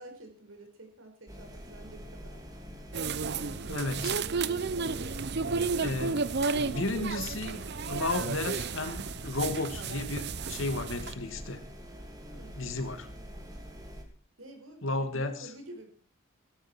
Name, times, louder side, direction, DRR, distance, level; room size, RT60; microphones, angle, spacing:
voice 1, 0.0-2.4 3.1-4.1 4.9-5.5 12.2-12.7 14.4-15.9, right 1 dB, 75° right, 5 dB, 5.3 m, -50 dB
sound 1, 1.3-14.0, equal, 20° right, 3.2 m, -45 dB
sound 2, 2.9-11.1, right 4 dB, 55° right, 0.7 m, -32 dB
voice 2, 3.7-4.1 5.8-6.2 6.6-11.6 12.6-13.1 14.8-15.3, left 2 dB, 70° left, 8 dB, 2.3 m, -33 dB
17.0 x 13.0 x 4.5 m, 0.39 s
head